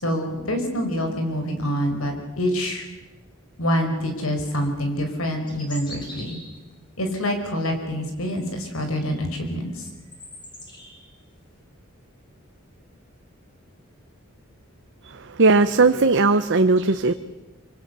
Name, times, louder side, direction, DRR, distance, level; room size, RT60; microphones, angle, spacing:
voice 1, 0.0-2.9 3.6-6.4 7.0-9.9, equal, 85° left, 5 dB, 5.1 m, -26 dB
sound 1, 5.5-6.7 8.1-9.3 9.7-11.1, left 1 dB, 20° left, 5.3 m, -43 dB
voice 2, 15.0-17.1, right 3 dB, 60° right, 8 dB, 0.9 m, -18 dB
25.0 x 24.5 x 6.9 m, 1.1 s
head